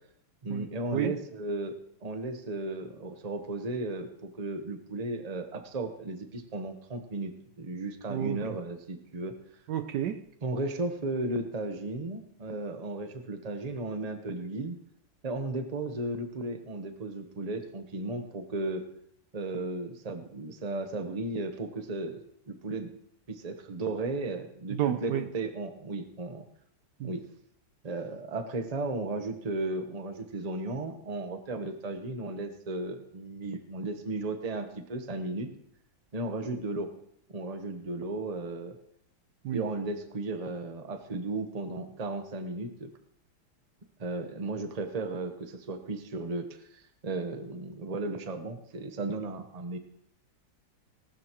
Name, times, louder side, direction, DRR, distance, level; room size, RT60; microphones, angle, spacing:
voice 1, 0.4-9.4 10.4-14.8 15.2-18.8 19.3-22.9 23.3-26.4 27.0-27.2 27.8-35.5 36.1-36.9 37.3-38.8 39.5-42.9 44.0-46.5 46.7-49.8, right 2 dB, 25° right, 7 dB, 0.9 m, -35 dB
voice 2, 9.7-10.2 24.7-25.3 27.0-27.1 39.4-39.6, right 11 dB, 70° right, 9 dB, 1.2 m, -30 dB
19.0 x 12.5 x 3.1 m, 0.69 s
omnidirectional pair, 2.1 m